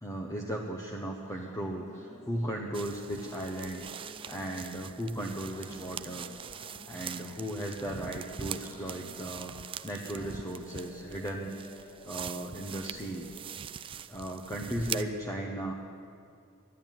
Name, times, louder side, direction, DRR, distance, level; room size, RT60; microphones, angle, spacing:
voice 1, 0.0-6.4 6.8-11.5 12.0-13.3 14.1-15.7, right 1 dB, 15° left, 0 dB, 0.9 m, -36 dB
sound 1, 1.1-13.6, left 1 dB, 30° left, 2.2 m, -53 dB
sound 2, 2.7-15.0, right 7 dB, 25° right, 0.3 m, -43 dB
12.0 x 11.5 x 9.1 m, 2.4 s
head